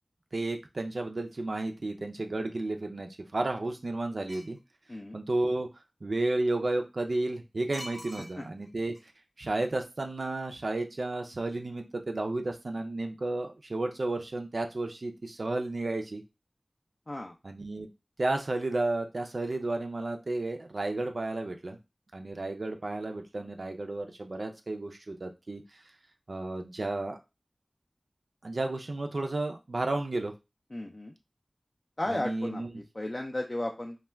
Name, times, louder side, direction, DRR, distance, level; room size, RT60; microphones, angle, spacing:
voice 1, 0.3-4.6 5.1-5.7 6.0-8.9 9.4-16.2 17.4-17.9 18.2-21.8 22.1-25.6 26.3-27.2 28.4-30.3 32.1-32.7, right 2 dB, 75° right, 4 dB, 0.3 m, -32 dB
sound 1, 4.3-4.6 7.7-8.7 8.9-9.0, equal, 20° left, 0.7 m, -44 dB
voice 2, 30.7-31.1 32.0-34.0, left 1 dB, 45° left, 2 dB, 0.3 m, -34 dB
2.1 x 2.1 x 3.3 m, 0.25 s
wide cardioid pair, 45°, 0 cm